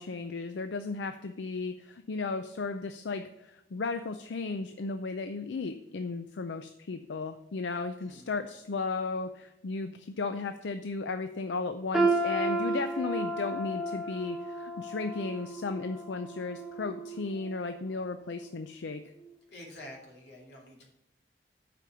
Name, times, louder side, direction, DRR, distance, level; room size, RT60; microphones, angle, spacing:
voice 1, 0.0-19.0, left 4 dB, 85° left, 9 dB, 0.5 m, -35 dB
voice 2, 8.0-8.3 19.5-20.9, left 1 dB, 65° left, -1 dB, 2.6 m, -48 dB
sound 1, 11.9-17.9 18.3-18.5 19.3-19.4, right 2 dB, ahead, 0.8 m, -32 dB
7.6 x 5.1 x 7.0 m, 0.90 s
head